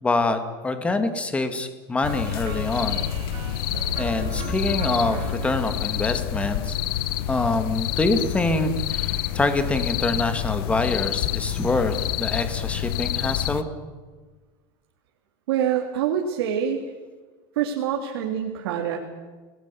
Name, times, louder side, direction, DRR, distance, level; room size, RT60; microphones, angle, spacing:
voice 1, 0.0-3.0 3.9-6.8 7.3-13.7, left 2 dB, 10° left, 8 dB, 2.1 m, -25 dB
sound 1, 2.0-13.6, left 12 dB, 70° left, 1.2 m, -28 dB
sound 2, 2.0-7.0, right 5 dB, 35° right, 6.2 m, -37 dB
voice 2, 15.5-16.8 17.5-19.0, right 9 dB, 90° right, 1 dB, 3.4 m, -25 dB
29.5 x 21.0 x 7.0 m, 1.4 s
supercardioid pair, 165°, 13 cm